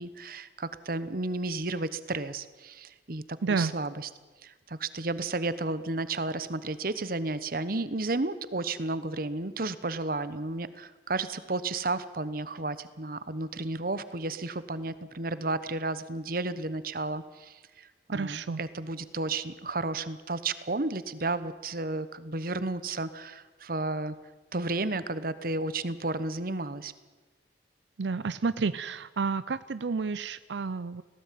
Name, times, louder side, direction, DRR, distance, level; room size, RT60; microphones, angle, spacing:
voice 1, 0.0-4.1 4.4-24.1 24.5-26.9, right 2 dB, 55° right, 14 dB, 1.1 m, -32 dB
voice 2, 3.4-3.7 18.1-18.6 28.0-31.0, right 4 dB, 90° right, 15 dB, 0.6 m, -30 dB
19.5 x 16.5 x 9.3 m, 1.3 s
head